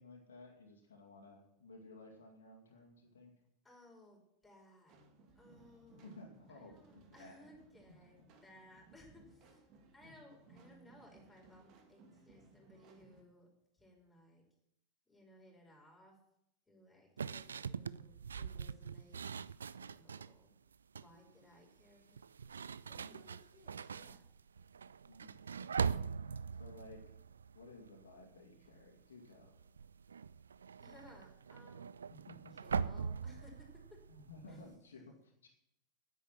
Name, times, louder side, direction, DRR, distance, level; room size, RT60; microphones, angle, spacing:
voice 1, 0.0-3.3 6.0-7.4 10.0-10.1 22.9-23.2 25.1-25.4 26.6-27.1 27.5-29.6 32.3-32.6 34.1-35.5, left 2 dB, 65° left, 1 dB, 2.3 m, -56 dB
voice 2, 3.6-5.0 5.3-6.2 6.5-13.5 13.7-14.4 15.1-16.2 16.7-19.2 19.8-20.5 20.9-22.2 22.9-24.2 30.8-31.9 32.5-34.0 34.5-34.6, left 1 dB, 5° left, -2 dB, 5.1 m, -61 dB
sound 1, 4.9-13.2, right 3 dB, 40° right, 2.1 m, -63 dB
sound 2, 17.2-20.4 20.7-21.2 22.1-28.3 28.6-29.0 29.3-34.7, right 6 dB, 70° right, 0.4 m, -42 dB
10.0 x 9.7 x 7.4 m, 0.79 s
figure-of-eight pair, 90°, 0 cm